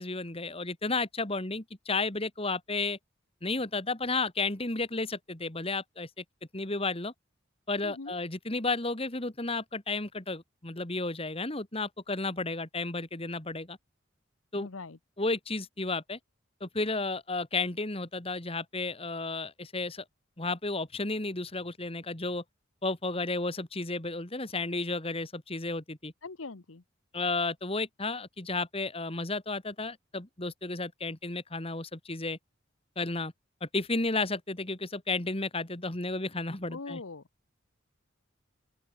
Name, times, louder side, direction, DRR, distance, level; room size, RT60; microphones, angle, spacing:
voice 1, 0.0-3.0 3.4-6.2 6.5-7.1 7.7-13.8 14.5-14.7 15.2-16.2 16.6-20.0 20.4-22.4 22.8-26.1 27.1-32.4 33.0-33.3 33.6-37.0, left 3 dB, 30° left, 2.1 m, -32 dB
voice 2, 7.8-8.2 14.5-15.0 26.2-26.8 36.7-37.2, left 3 dB, 90° left, 1.1 m, -41 dB
open air
head